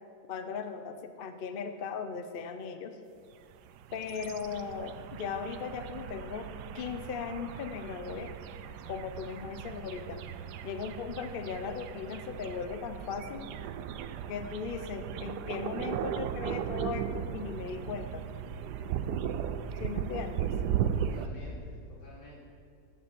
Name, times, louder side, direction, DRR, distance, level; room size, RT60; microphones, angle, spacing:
voice 1, 0.3-3.0 3.9-6.5 6.7-8.3 8.8-10.2 10.6-13.5 14.3-18.2 19.8-20.5, left 6 dB, 50° left, 8 dB, 0.6 m, -38 dB
sound 1, 3.5-21.3, right 9 dB, 80° right, 1.2 m, -37 dB
Bowed string instrument, 15.3-19.4, right 5 dB, 60° right, 0.9 m, -56 dB
voice 2, 21.0-22.4, left 1 dB, 80° left, -6 dB, 4.0 m, -51 dB
12.5 x 6.8 x 7.8 m, 2.5 s
omnidirectional pair, 1.8 m